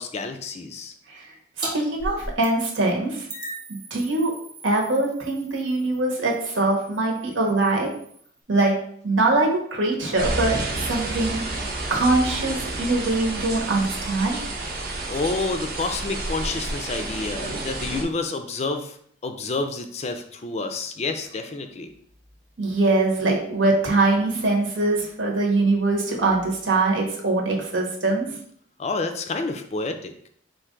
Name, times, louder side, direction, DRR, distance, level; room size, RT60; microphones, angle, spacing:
voice 1, 0.0-0.9 15.1-19.0 19.2-21.9 28.8-30.1, left 3 dB, 35° left, 7 dB, 0.3 m, -29 dB
voice 2, 1.1-3.3 3.7-4.3 4.6-7.9 8.5-8.8 9.0-14.4 22.6-28.3, right 2 dB, 85° right, 0 dB, 1.1 m, -23 dB
sound 1, 1.6-1.7 2.0-2.9 3.3-8.4, right 1 dB, 20° right, 0.9 m, -39 dB
sound 2, 10.2-18.0, right 2 dB, 50° right, 0.7 m, -30 dB
4.5 x 2.5 x 3.7 m, 0.63 s
head